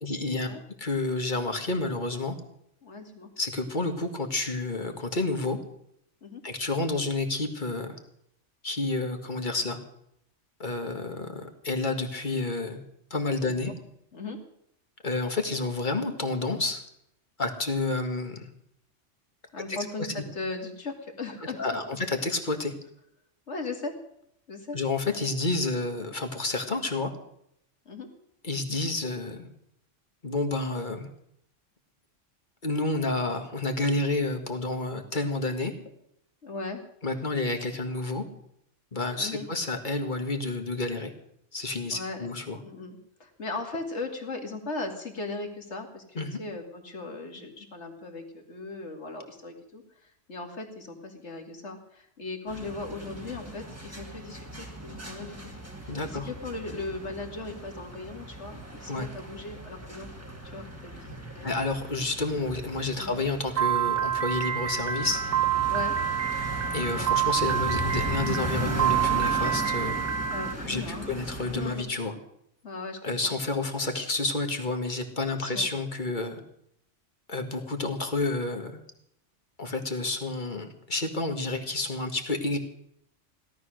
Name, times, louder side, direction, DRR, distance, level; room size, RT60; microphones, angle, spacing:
voice 1, 0.0-0.5 0.8-2.4 3.4-5.6 6.4-8.0 8.6-9.8 10.6-12.8 13.1-13.7 15.0-16.8 17.4-18.5 19.7-20.3 21.6-22.7 24.7-27.1 28.4-29.5 30.2-31.1 32.6-35.7 37.0-38.2 38.9-41.1 41.5-42.6 46.2-46.4 55.9-56.3 58.9-59.1 61.4-65.2 66.7-70.0 70.6-72.1 73.0-76.4 77.3-78.8 79.6-82.6, left 2 dB, 40° left, 5 dB, 1.9 m, -30 dB
voice 2, 2.8-3.3 6.2-6.4 13.4-13.7 14.1-14.4 19.5-21.8 23.5-23.9 24.5-24.8 27.9-28.1 36.4-36.8 39.2-39.5 41.9-42.3 42.6-55.5 55.8-60.1 60.5-61.5 63.0-63.2 65.6-65.9 70.3-71.1 71.5-71.9 72.6-73.3 75.3-75.7, left 3 dB, 65° left, 4 dB, 2.6 m, -38 dB
sound 1, 52.5-71.8, equal, 10° right, 2.0 m, -37 dB
Piano, 63.6-70.5, right 9 dB, 50° right, 1.3 m, -27 dB
17.0 x 12.5 x 6.4 m, 0.73 s
omnidirectional pair, 1.3 m